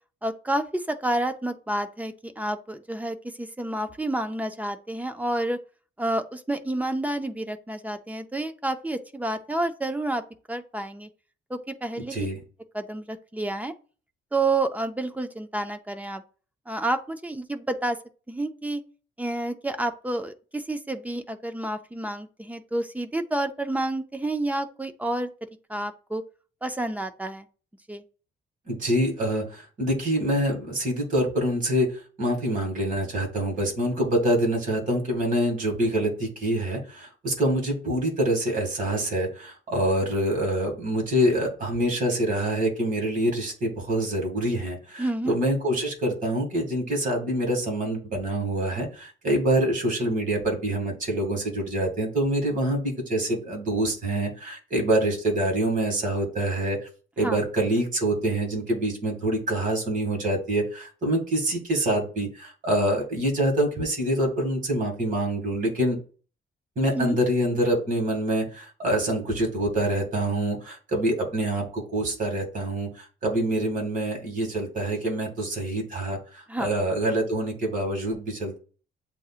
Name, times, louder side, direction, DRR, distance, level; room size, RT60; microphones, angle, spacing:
voice 1, 0.2-5.6 6.0-10.2 10.5-11.1 11.5-12.3 12.7-13.7 14.3-16.2 16.7-18.0 18.3-18.8 19.2-25.3 25.7-26.2 26.6-27.5 27.9-28.0 45.0-45.3 57.2-57.4 66.9-67.2 76.5-76.7, right 2 dB, 10° right, 8 dB, 0.4 m, -29 dB
voice 2, 28.7-31.9 32.2-56.8 57.2-66.0 66.8-78.6, right 1 dB, 45° right, 1 dB, 2.1 m, -26 dB
7.9 x 2.8 x 2.4 m, 0.37 s
cardioid pair, 135°, 20 cm